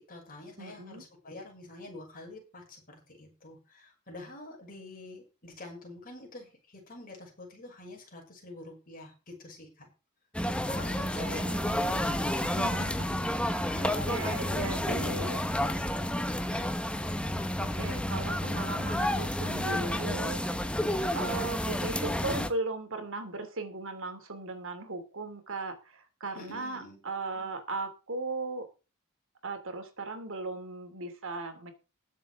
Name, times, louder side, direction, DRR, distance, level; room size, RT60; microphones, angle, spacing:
voice 1, 0.0-9.9 10.7-11.5 11.9-12.4 13.7-15.8 26.3-27.0, left 2 dB, 40° left, 1 dB, 6.2 m, -46 dB
voice 2, 0.6-1.0 11.1-12.1 12.4-15.4 17.6-20.4 21.1-28.7 29.4-31.7, right 3 dB, 60° right, 7 dB, 2.7 m, -37 dB
sound 1, 10.3-22.5, left 1 dB, 5° left, 1.1 m, -30 dB
20.0 x 7.3 x 3.6 m, 0.32 s
head